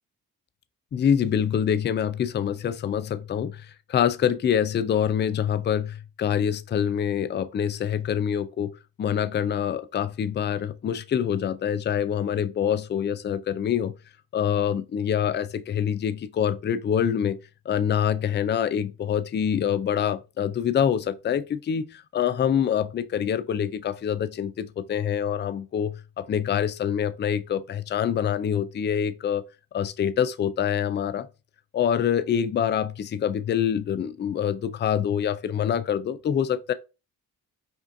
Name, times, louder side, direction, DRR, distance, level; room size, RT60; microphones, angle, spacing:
voice 1, 0.9-13.9 14.3-17.4 17.7-29.4 29.7-31.3 31.7-36.7, left 8 dB, 30° left, 0.4 m, -25 dB
5.2 x 2.5 x 2.5 m
supercardioid pair, 60°, 39 cm